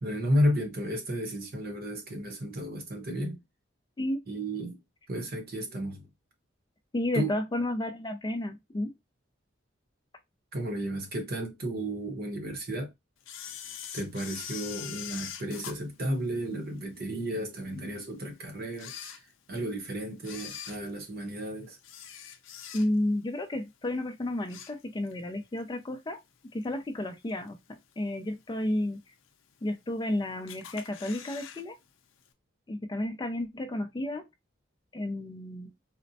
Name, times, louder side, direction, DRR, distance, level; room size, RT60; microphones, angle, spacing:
voice 1, 0.0-3.4 4.3-4.8 5.1-6.1 7.1-7.3 10.5-12.9 13.9-19.2 19.5-21.8, equal, 50° right, 0.9 m, -32 dB
voice 2, 6.9-8.9 22.7-26.2 26.5-29.0 29.6-31.8 32.7-34.2 34.9-35.7, left 1 dB, 20° left, 0.4 m, -32 dB
Camera, 13.2-16.8 17.3-17.4 18.1-18.2 18.7-19.7 20.2-23.2 23.5-23.8 24.2-25.2 25.6-25.7 26.6-26.7 27.3-27.7 28.1-28.2 28.4-28.5 28.7-28.8 29.5-30.1 30.5-31.6 31.9-32.0 32.3-32.4, left 9 dB, 85° left, 0.5 m, -43 dB
4.1 x 2.1 x 2.7 m
head